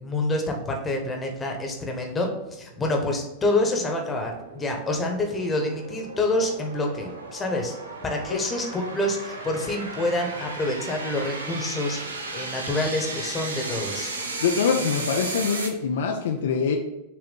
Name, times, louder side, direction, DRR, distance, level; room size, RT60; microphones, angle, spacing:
voice 1, 0.0-7.7 8.0-12.0 12.3-14.1, left 2 dB, 20° left, 2 dB, 1.3 m, -27 dB
sound 1, 1.2-15.7, right 3 dB, 75° right, 0.9 m, -36 dB
voice 2, 14.4-16.8, left 6 dB, 60° left, 3 dB, 0.6 m, -24 dB
6.8 x 3.4 x 5.4 m, 0.97 s
figure-of-eight pair, 90°, 0 cm